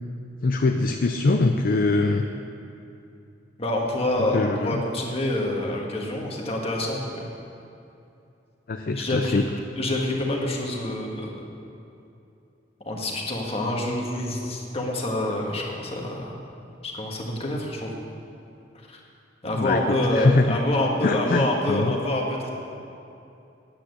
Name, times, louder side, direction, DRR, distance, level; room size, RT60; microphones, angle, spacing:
voice 1, 0.4-2.3 4.3-4.8 8.7-9.5 19.4-20.6 21.0-22.0, left 3 dB, 50° left, 5 dB, 0.5 m, -23 dB
voice 2, 3.6-7.3 8.9-9.4 9.8-11.4 12.8-16.4 16.8-17.9 18.9-19.0 19.4-22.5, left 1 dB, 35° left, -1 dB, 1.7 m, -27 dB
9.9 x 8.9 x 7.9 m, 2.7 s
head